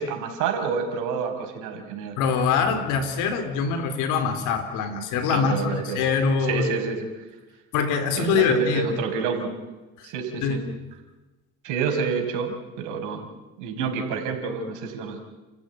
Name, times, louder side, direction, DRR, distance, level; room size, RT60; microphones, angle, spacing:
voice 1, 0.0-2.2 5.3-6.0 6.4-7.2 8.2-9.5 10.0-10.6 11.6-13.3 13.6-15.2, right 5 dB, 75° right, 4 dB, 5.6 m, -28 dB
voice 2, 2.2-6.7 7.7-9.0 10.0-10.1 10.4-10.6, left 5 dB, 75° left, 8 dB, 3.9 m, -24 dB
30.0 x 15.0 x 9.3 m, 1.1 s
supercardioid pair, 80°, 31 cm